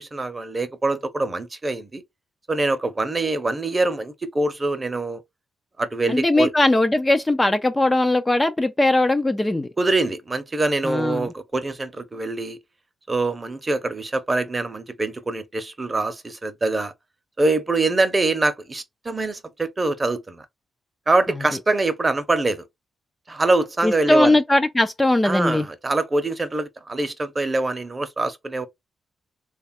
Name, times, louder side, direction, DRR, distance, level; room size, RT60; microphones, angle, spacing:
voice 1, 0.0-2.0 2.5-5.2 5.8-6.5 9.8-12.6 13.1-16.9 17.4-20.5 21.1-22.6 23.3-24.4 25.2-28.7, right 2 dB, 25° right, 0.7 m, -24 dB
voice 2, 6.1-9.7 10.8-11.3 23.8-25.6, left 2 dB, 15° left, 0.4 m, -19 dB
3.3 x 2.3 x 4.2 m
cardioid pair, 100°, 0 cm